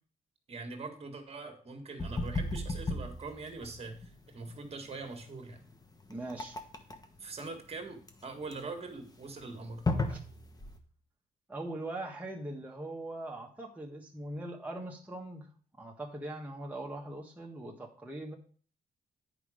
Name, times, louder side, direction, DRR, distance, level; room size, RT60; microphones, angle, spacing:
voice 1, 0.5-5.6 7.2-9.8, right 3 dB, 40° right, 5 dB, 1.8 m, -43 dB
sound 1, 2.0-10.8, left 2 dB, 25° left, 1.2 m, -36 dB
voice 2, 6.1-6.6 10.1-10.2 11.5-15.5 15.8-18.3, right 1 dB, 10° right, -1 dB, 1.4 m, -41 dB
9.2 x 5.1 x 5.0 m, 0.44 s
cardioid pair, 90°, 15 cm